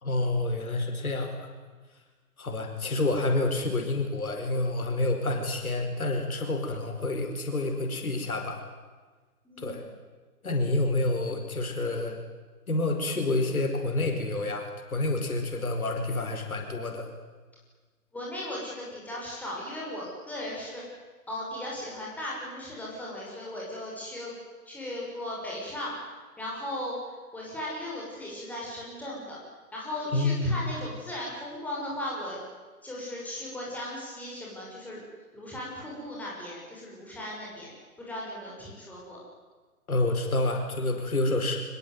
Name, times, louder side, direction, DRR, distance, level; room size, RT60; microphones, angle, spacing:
voice 1, 0.0-1.5 2.4-8.6 9.6-9.8 10.4-12.2 12.7-17.1 30.1-30.6 39.9-41.6, left 2 dB, 65° left, 4 dB, 5.1 m, -28 dB
voice 2, 9.4-9.8 18.1-20.8 21.3-24.3 24.7-26.0 26.4-27.0 27.3-29.4 29.7-32.4 32.8-35.0 35.3-39.2, left 1 dB, 5° left, -5 dB, 6.2 m, -37 dB
25.0 x 21.0 x 9.4 m, 1.4 s
figure-of-eight pair, 140°, 46 cm